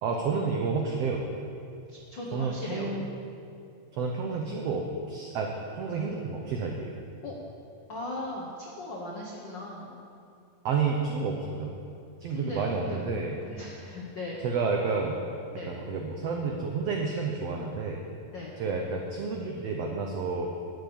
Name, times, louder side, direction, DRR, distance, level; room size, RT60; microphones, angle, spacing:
voice 1, 0.0-1.2 2.3-3.0 4.0-6.9 10.6-11.7 12.2-13.4 14.4-15.2 15.7-18.0 18.6-20.5, right 4 dB, 75° right, 1 dB, 1.4 m, -30 dB
voice 2, 1.9-2.9 7.2-7.4 7.9-10.0 12.3-14.4 15.5-15.8 18.3-18.6, left 2 dB, 90° left, -2 dB, 1.0 m, -39 dB
12.0 x 8.9 x 6.9 m, 2.5 s
omnidirectional pair, 4.0 m